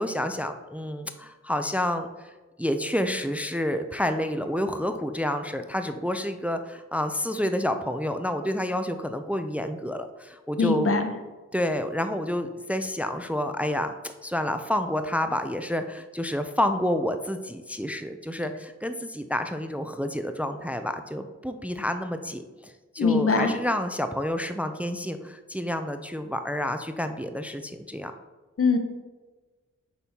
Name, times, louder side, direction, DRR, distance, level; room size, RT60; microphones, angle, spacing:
voice 1, 0.0-2.3 2.6-10.9 11.5-28.1, left 1 dB, 5° right, 8 dB, 0.4 m, -29 dB
voice 2, 10.6-11.1 23.0-23.5 28.6-28.8, left 4 dB, 50° left, 6 dB, 0.9 m, -22 dB
6.2 x 5.4 x 2.8 m, 1.3 s
cardioid pair, 40°, 30 cm